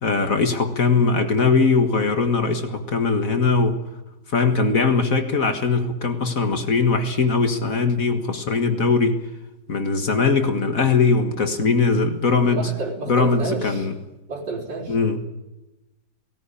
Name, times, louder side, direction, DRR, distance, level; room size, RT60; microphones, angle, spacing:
voice 1, 0.0-3.8 4.3-9.2 9.7-12.7 13.1-14.0 14.9-15.2, left 4 dB, 50° left, 7 dB, 1.9 m, -20 dB
voice 2, 12.4-13.9 14.3-14.9, right 3 dB, 75° right, -4 dB, 4.8 m, -30 dB
18.0 x 17.5 x 9.9 m, 0.99 s
omnidirectional pair, 1.9 m